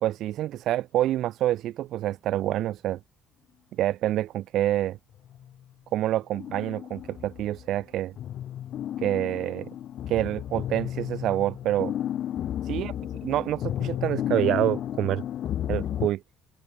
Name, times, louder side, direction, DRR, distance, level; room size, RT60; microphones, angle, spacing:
voice 1, 0.0-3.0 3.8-5.0 5.9-8.1 9.0-9.7 10.1-11.9 12.6-12.9 13.2-15.2 15.7-16.2, right 13 dB, 55° right, 0.7 m, -27 dB
sound 1, 5.1-5.7 6.3-7.8 8.2-16.1, left 11 dB, 50° left, 3.9 m, -33 dB
open air
cardioid pair, 145°, 0 cm